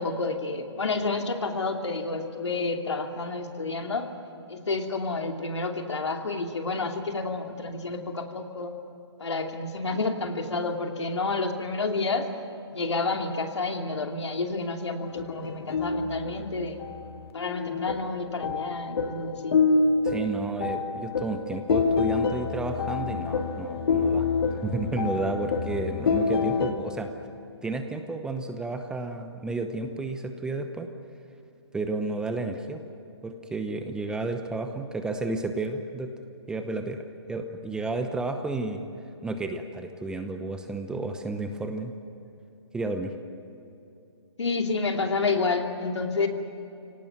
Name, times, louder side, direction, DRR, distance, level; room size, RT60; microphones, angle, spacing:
voice 1, 0.0-4.1 4.5-8.7 9.2-12.3 12.7-16.8 17.3-19.5 44.4-46.3, left 3 dB, 80° left, 4 dB, 2.8 m, -29 dB
sound 1, 15.0-26.7, left 4 dB, 60° left, 2.2 m, -27 dB
voice 2, 20.0-27.1 27.6-30.9 31.7-32.8 33.2-36.1 36.5-38.8 39.2-41.9 42.7-43.1, right 2 dB, 5° right, 6 dB, 0.8 m, -32 dB
25.0 x 18.0 x 9.3 m, 2.8 s
hypercardioid pair, 150°, 15 cm